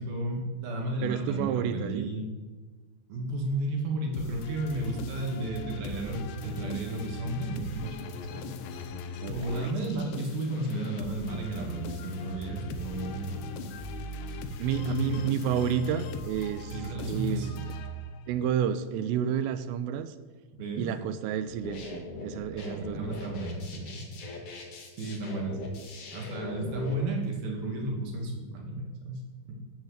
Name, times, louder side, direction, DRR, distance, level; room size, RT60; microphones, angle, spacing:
voice 1, 0.0-2.3 3.1-8.0 8.3-8.5 9.3-13.7 14.3-14.4 14.8-15.2 16.7-17.8 20.5-20.9 22.5-24.2 24.9-25.6 26.1-29.2 29.5-29.6, right 1 dB, 55° right, 0 dB, 3.3 m, -33 dB
voice 2, 1.0-2.1 9.2-9.7 14.6-16.8 17.1-17.5 18.3-20.1 20.8-23.3, right 9 dB, 85° right, 12 dB, 3.2 m, -30 dB
sound 1, 4.1-18.4, left 2 dB, 75° left, 2.7 m, -39 dB
sound 2, 21.5-26.9, left 3 dB, 90° left, 1.3 m, -40 dB
12.0 x 7.2 x 8.1 m, 1.3 s
omnidirectional pair, 5.8 m